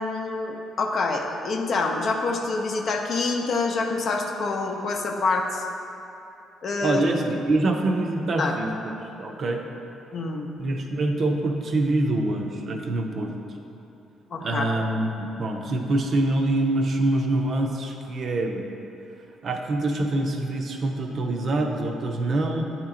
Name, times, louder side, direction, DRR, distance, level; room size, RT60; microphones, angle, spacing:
voice 1, 0.0-5.7 6.6-7.0 8.4-8.5 10.1-10.5 14.3-14.7, left 3 dB, 55° left, 2 dB, 0.6 m, -26 dB
voice 2, 6.8-9.6 10.6-13.3 14.4-18.6 19.4-22.6, right 2 dB, 50° right, 3 dB, 0.6 m, -25 dB
8.6 x 2.9 x 3.7 m, 2.9 s
cardioid pair, 90°, 0 cm